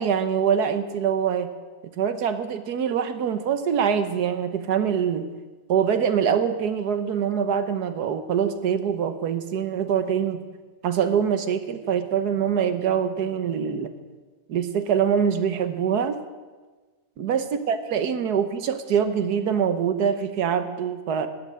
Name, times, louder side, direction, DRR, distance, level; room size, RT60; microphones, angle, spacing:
voice 1, 0.0-1.5 2.0-5.2 5.7-10.4 10.8-13.9 14.5-16.2 17.2-21.3, right 7 dB, 85° right, 10 dB, 1.5 m, -24 dB
13.5 x 8.2 x 9.6 m, 1.3 s
omnidirectional pair, 1.7 m